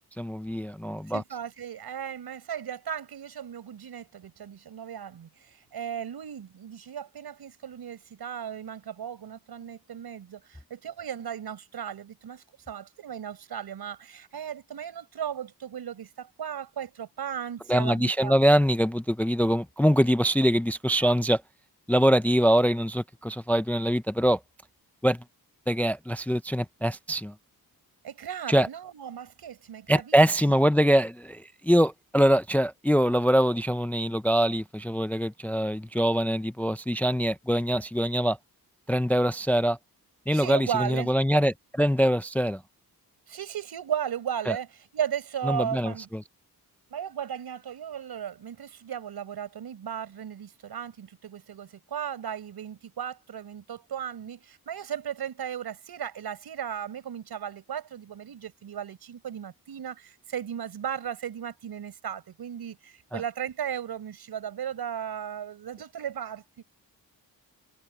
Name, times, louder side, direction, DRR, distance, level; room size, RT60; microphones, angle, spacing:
voice 1, 0.2-1.2 17.7-21.4 21.9-24.4 25.0-25.2 25.7-27.3 28.5-28.7 29.9-38.4 38.9-39.8 40.3-42.6 44.5-44.6 45.4-46.2 63.1-63.2, equal, 5° left, 0.4 m, -23 dB
voice 2, 1.1-18.3 20.9-21.1 28.0-30.2 30.4-30.5 40.3-41.1 43.3-44.7 44.9-46.1 46.9-66.6, right 9 dB, 75° right, 5.3 m, -36 dB
wide cardioid pair, 150°, 38 cm